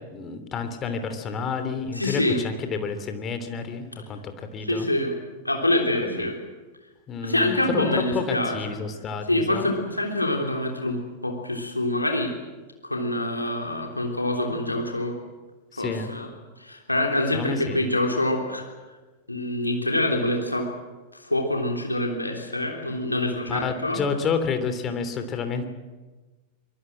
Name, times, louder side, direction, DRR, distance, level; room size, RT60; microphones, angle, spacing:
voice 1, 0.1-4.9 6.0-6.3 7.1-9.7 15.7-16.1 17.3-17.9 23.4-25.7, left 5 dB, 30° left, 8 dB, 3.2 m, -30 dB
voice 2, 1.9-2.4 4.6-5.2 5.4-6.4 7.2-8.6 9.3-12.3 12.8-15.2 15.8-16.3 16.6-18.7 19.3-20.7 21.1-24.0, left 1 dB, 85° left, 2 dB, 3.4 m, -25 dB
24.5 x 22.5 x 7.6 m, 1.3 s
figure-of-eight pair, 90°, 0 cm